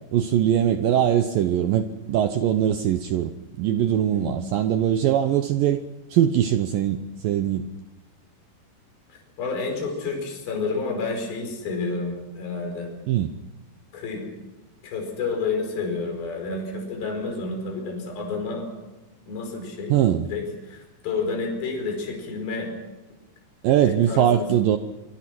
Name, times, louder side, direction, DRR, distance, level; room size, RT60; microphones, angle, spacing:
voice 1, 0.1-3.3 3.6-5.8 6.1-7.7 13.1-13.3 19.9-20.3 23.6-24.8, right 10 dB, 85° right, 9 dB, 2.0 m, -21 dB
voice 2, 4.1-4.4 9.1-12.9 13.9-14.3 14.8-18.7 19.3-19.9 20.3-22.7 23.8-24.5, left 4 dB, 55° left, 2 dB, 6.6 m, -30 dB
25.0 x 24.0 x 6.1 m, 1.1 s
omnidirectional pair, 5.2 m